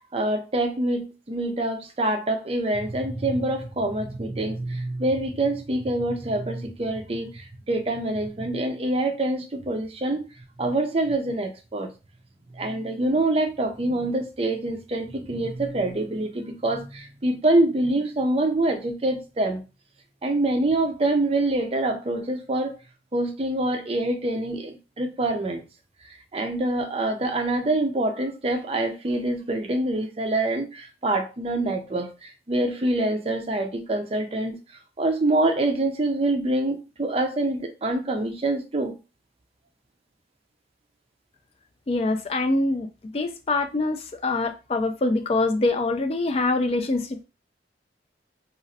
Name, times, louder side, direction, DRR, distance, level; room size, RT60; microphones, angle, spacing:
voice 1, 0.1-10.2 10.6-11.9 12.6-19.6 20.2-22.7 23.1-25.6 26.3-32.1 32.5-34.6 35.0-38.9, right 2 dB, 35° right, 0.5 m, -25 dB
voice 2, 41.9-42.9 43.1-47.2, left 2 dB, 35° left, 0.3 m, -24 dB
3.0 x 2.4 x 2.6 m
head